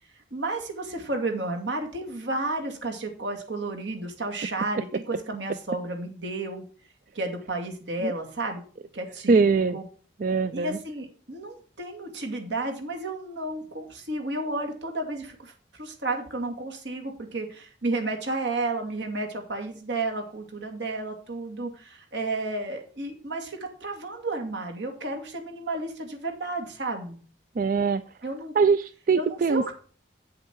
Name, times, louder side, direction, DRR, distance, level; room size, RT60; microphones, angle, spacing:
voice 1, 0.3-6.6 7.1-8.6 8.9-9.4 9.7-9.8 10.5-27.2 28.2-28.5 29.1-29.7, right 2 dB, 70° right, 3 dB, 2.4 m, -32 dB
voice 2, 9.3-9.8 10.2-10.8 27.6-28.0 28.6-29.6, right 4 dB, 45° right, 13 dB, 0.4 m, -22 dB
8.4 x 7.8 x 4.7 m, 0.40 s
head